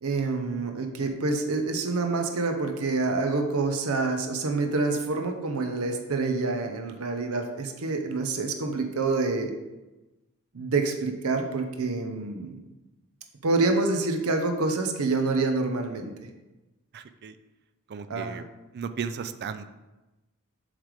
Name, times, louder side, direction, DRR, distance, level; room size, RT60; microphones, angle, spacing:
voice 1, 0.0-9.5 10.5-12.6 13.4-16.1 18.1-18.4, right 3 dB, 70° right, 5 dB, 0.7 m, -27 dB
voice 2, 16.9-17.4 17.9-18.4 18.7-19.7, right 6 dB, 50° right, 11 dB, 0.4 m, -35 dB
7.3 x 3.3 x 4.8 m, 1.1 s
head